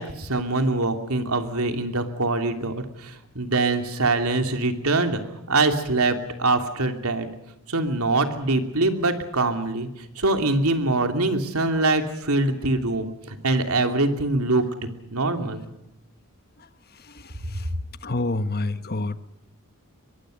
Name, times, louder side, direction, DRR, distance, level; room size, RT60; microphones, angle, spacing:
voice 1, 0.0-5.2 5.5-7.3 7.7-15.6, right 2 dB, 85° right, 6 dB, 3.0 m, -24 dB
voice 2, 18.0-19.2, left 2 dB, 45° left, 12 dB, 1.3 m, -26 dB
24.5 x 22.0 x 6.5 m, 0.87 s
head